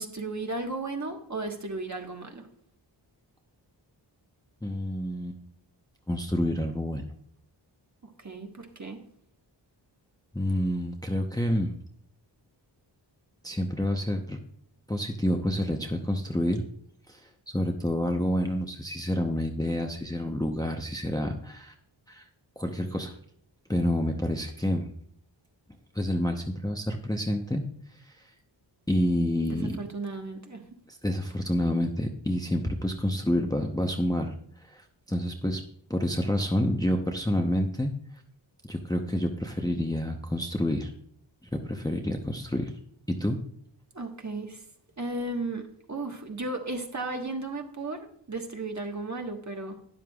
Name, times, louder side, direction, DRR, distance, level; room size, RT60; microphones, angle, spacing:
voice 1, 0.0-2.5 8.0-9.0 29.5-30.7 43.9-44.6 45.0-45.6 45.9-49.8, right 2 dB, 35° right, 3 dB, 1.4 m, -35 dB
voice 2, 4.6-5.4 6.1-7.0 10.3-11.7 13.4-14.4 14.9-16.6 17.1-17.3 17.5-21.7 22.1-22.2 22.6-23.1 23.7-24.9 25.9-27.6 28.1-28.2 28.9-29.8 30.9-34.3 34.6-34.8 35.1-35.6 35.9-37.9 38.6-40.9 41.5-42.7 43.1-43.4, left 1 dB, 10° left, 3 dB, 0.8 m, -28 dB
12.5 x 9.6 x 2.4 m, 0.64 s
wide cardioid pair, 80°, 46 cm